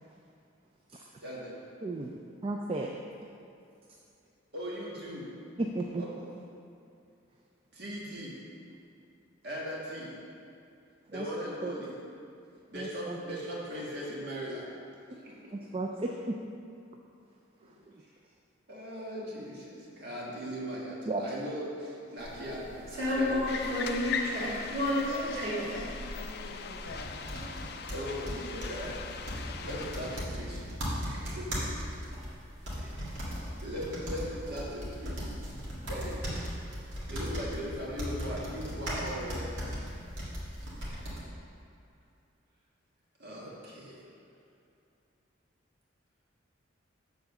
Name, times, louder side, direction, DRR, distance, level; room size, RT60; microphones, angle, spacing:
voice 1, 1.2-1.6 4.5-5.3 6.0-6.4 7.7-8.4 9.4-10.1 11.1-11.9 12.7-14.7 15.1-15.7 17.6-17.7 18.7-24.1 25.2-25.3 27.9-29.0 29.4-30.6 31.0-31.8 32.8-32.9 33.6-35.3 35.9-36.3 37.1-39.5 43.2-44.0, equal, 55° right, -5 dB, 1.6 m, -39 dB
voice 2, 1.8-2.9 5.6-6.0 11.1-11.3 11.6-11.7 12.7-13.4 15.1-15.2 15.5-16.4 21.1-21.3, right 2 dB, 30° right, 1 dB, 0.3 m, -34 dB
sound 1, 22.2-41.2, equal, 70° right, 1.8 m, -35 dB
sound 2, 23.5-30.3, left 5 dB, 50° left, 0.4 m, -40 dB
voice 3, 25.0-27.4, left 1 dB, 75° left, 1 dB, 0.9 m, -42 dB
7.1 x 3.9 x 6.6 m, 2.6 s
head